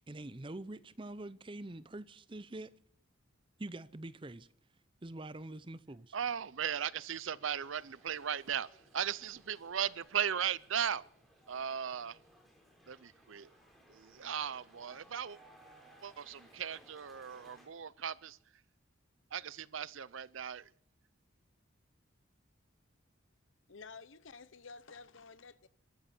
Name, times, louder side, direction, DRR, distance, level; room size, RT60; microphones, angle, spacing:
voice 1, 0.0-2.7 3.6-4.5 5.0-6.2, right 2 dB, 25° right, 0.6 m, -45 dB
voice 2, 6.1-11.0 11.5-12.2 12.9-13.5 13.9-15.4 16.0-18.4 19.3-20.7, right 8 dB, 75° right, 0.6 m, -37 dB
sound 1, 7.4-17.7, right 1 dB, ahead, 4.4 m, -62 dB
voice 3, 23.7-25.7, left 4 dB, 75° left, 0.9 m, -51 dB
22.5 x 13.5 x 4.4 m
head